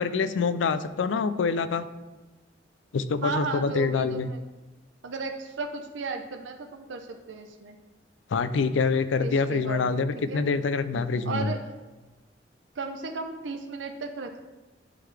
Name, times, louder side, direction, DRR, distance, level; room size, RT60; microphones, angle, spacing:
voice 1, 0.0-1.9 2.9-4.3 8.3-11.5, left 4 dB, 85° left, 13 dB, 0.4 m, -26 dB
voice 2, 3.2-4.4 5.0-7.8 9.2-10.0 10.3-10.4 11.3-11.7 12.8-14.4, right 4 dB, 85° right, 4 dB, 0.6 m, -35 dB
11.0 x 3.8 x 3.3 m, 1.2 s
head